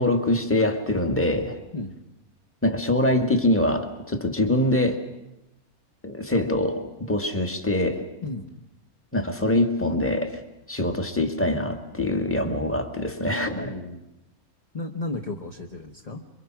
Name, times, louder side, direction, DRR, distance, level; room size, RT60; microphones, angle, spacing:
voice 1, 0.0-1.6 2.6-5.0 6.0-8.0 9.1-10.4 10.7-13.7, left 1 dB, 10° left, 6 dB, 1.6 m, -24 dB
voice 2, 13.6-14.0 14.7-16.2, left 2 dB, 30° left, 1 dB, 1.2 m, -33 dB
26.5 x 23.5 x 6.0 m, 0.92 s
omnidirectional pair, 1.5 m